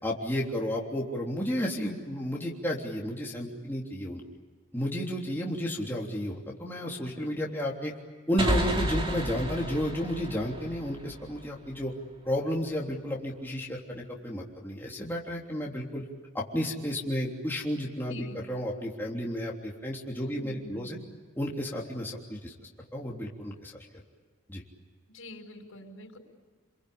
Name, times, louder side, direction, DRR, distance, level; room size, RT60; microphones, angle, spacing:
voice 1, 0.0-4.2 4.7-7.9 8.3-11.9 12.2-16.0 16.3-21.0 21.4-22.5 22.9-23.7 24.5-24.6, equal, 10° left, -3 dB, 3.3 m, -32 dB
sound 1, 8.4-11.9, right 1 dB, 25° right, 2.8 m, -32 dB
voice 2, 18.1-18.4 20.2-21.2 25.1-26.2, left 1 dB, 85° left, 3 dB, 5.7 m, -46 dB
30.0 x 22.5 x 8.7 m, 1.6 s
head